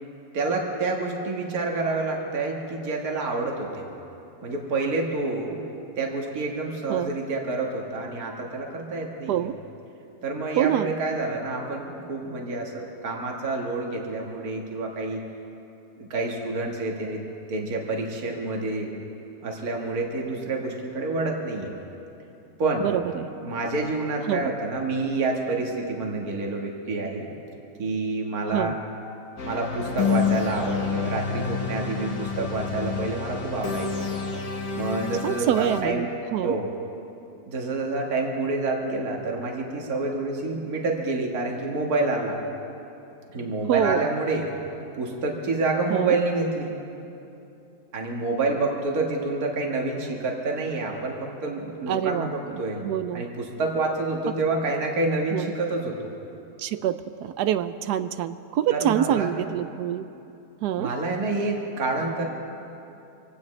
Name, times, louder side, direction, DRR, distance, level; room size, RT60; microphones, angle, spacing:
voice 1, 0.3-3.9 4.4-5.6 6.0-9.5 10.2-15.2 16.0-17.2 17.5-18.9 19.4-21.7 22.6-22.9 23.4-27.3 27.8-28.8 29.4-34.1 34.8-36.1 36.4-36.7 37.5-42.4 43.3-44.5 45.0-46.7 47.9-52.8 53.1-56.1 58.7-59.4 60.8-62.2, right 3 dB, 60° right, 0 dB, 2.0 m, -28 dB
voice 2, 10.6-10.9 22.8-23.3 24.3-24.5 28.5-28.7 35.2-36.5 43.7-44.1 45.9-46.2 51.9-52.3 52.8-53.2 55.3-55.5 56.6-60.1 60.6-60.9, right 11 dB, 75° right, 12 dB, 1.1 m, -26 dB
sound 1, 29.4-35.8, left 6 dB, 55° left, 1.9 m, -29 dB
26.0 x 17.5 x 3.2 m, 2.8 s
omnidirectional pair, 1.8 m